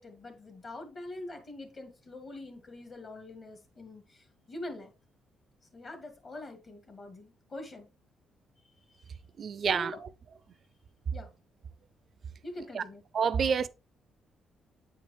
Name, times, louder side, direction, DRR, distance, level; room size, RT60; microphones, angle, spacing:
voice 1, 0.0-4.9 5.7-7.9 8.6-9.0 9.7-10.0 11.1-11.3 12.4-13.0, left 2 dB, 45° left, 1.7 m, -44 dB
voice 2, 9.4-9.9 12.7-12.8 13.1-13.7, right 6 dB, 55° right, 0.4 m, -28 dB
8.1 x 4.5 x 3.1 m
cardioid pair, 90°, 0 cm